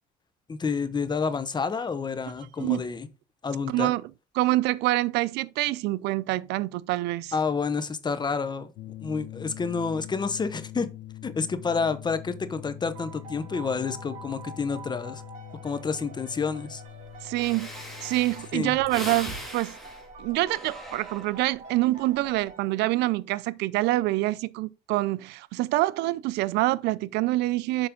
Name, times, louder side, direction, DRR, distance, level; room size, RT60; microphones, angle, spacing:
voice 1, 0.5-3.1 3.4-3.9 7.3-8.7 9.0-10.9 11.2-15.2 15.6-16.8 18.5-18.8, left 5 dB, 25° left, 0.9 m, -29 dB
voice 2, 3.7-4.0 4.3-7.3 17.2-17.7 18.0-19.8 20.2-27.9, right 18 dB, 85° right, 0.4 m, -26 dB
sound 1, 8.7-19.4, left 14 dB, 75° left, 0.6 m, -44 dB
sound 2, 12.9-23.3, right 3 dB, 45° right, 4.5 m, -47 dB
Breathing, 17.0-17.1 17.4-21.6 22.1-22.4, equal, ahead, 2.4 m, -40 dB
7.0 x 5.2 x 3.7 m
cardioid pair, 110°, 17 cm